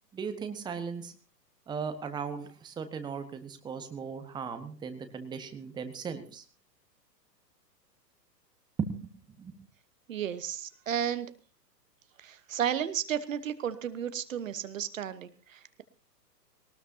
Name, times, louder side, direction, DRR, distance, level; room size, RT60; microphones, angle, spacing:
voice 1, 0.1-1.1 1.7-6.4 8.8-9.1 9.4-9.5, right 6 dB, 10° right, 8 dB, 1.2 m, -37 dB
voice 2, 10.1-11.3 12.2-15.8, right 9 dB, 50° right, 13 dB, 1.2 m, -33 dB
20.5 x 19.0 x 2.8 m, 0.37 s
figure-of-eight pair, 110°, 50 cm